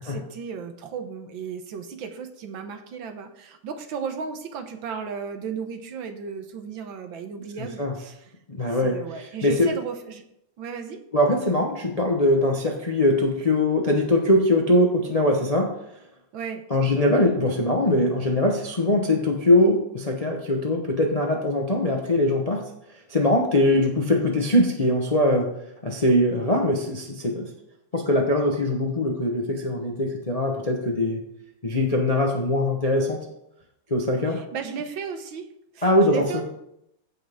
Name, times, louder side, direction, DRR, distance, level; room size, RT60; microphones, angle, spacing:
voice 1, 0.0-8.3 8.8-10.2 10.6-11.0 16.3-16.6 23.7-23.9 34.3-35.5 35.7-36.4, right 6 dB, 70° right, 6 dB, 1.6 m, -34 dB
voice 2, 7.6-7.9 8.5-9.7 11.1-15.7 16.7-22.7 23.1-25.5 25.8-27.5 27.9-31.2 31.6-33.2 33.9-34.4 35.8-36.4, left 1 dB, 35° left, 1 dB, 0.6 m, -22 dB
15.0 x 6.1 x 3.6 m, 0.79 s
omnidirectional pair, 2.4 m